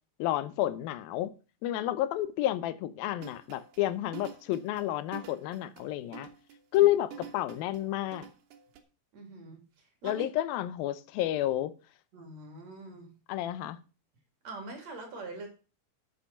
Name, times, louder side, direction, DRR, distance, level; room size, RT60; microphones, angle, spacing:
voice 1, 0.2-1.3 1.6-6.3 6.7-8.3 10.0-11.7 13.3-13.8, left 14 dB, 85° left, 2.6 m, -30 dB
sound 1, 3.2-8.8, right 8 dB, 70° right, 2.7 m, -48 dB
voice 2, 9.1-9.6 10.0-10.2 12.1-13.1 14.4-15.5, right 3 dB, 50° right, 3.5 m, -43 dB
8.5 x 7.8 x 5.8 m
omnidirectional pair, 4.1 m